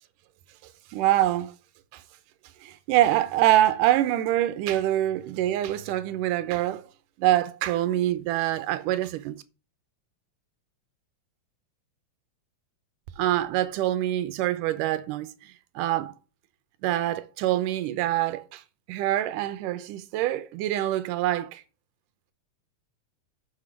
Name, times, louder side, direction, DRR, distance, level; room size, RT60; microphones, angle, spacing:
voice 1, 0.9-1.5 1.9-2.0 2.6-6.9 7.2-9.4 13.2-15.3 15.8-16.1 16.8-18.6 18.9-21.6, right 13 dB, 85° right, 2.3 m, -25 dB
6.7 x 6.0 x 7.2 m
omnidirectional pair, 3.7 m